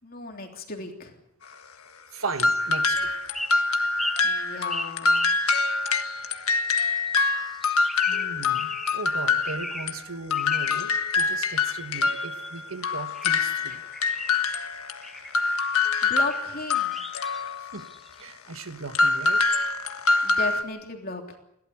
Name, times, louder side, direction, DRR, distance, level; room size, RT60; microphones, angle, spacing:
voice 1, 0.0-1.2 4.2-5.3 16.0-17.0 20.2-21.4, left 3 dB, 40° left, 2 dB, 3.3 m, -35 dB
voice 2, 2.1-3.3 8.1-13.8 17.6-17.9 18.2-19.5 19.7-19.8, right 4 dB, 70° right, 9 dB, 1.6 m, -37 dB
sound 1, 2.3-2.6 3.2-5.9 6.6-7.1 7.4-9.1 9.4-10.0 10.3-10.9 11.6-12.7 13.1-14.4 15.0-15.4 16.3-16.4 16.7-18.3, equal, ahead, 1.3 m, -38 dB
sound 2, 2.4-10.0 10.3-17.9 18.9-20.6, left 4 dB, 75° left, 1.5 m, -25 dB
30.0 x 12.5 x 8.5 m, 0.82 s
head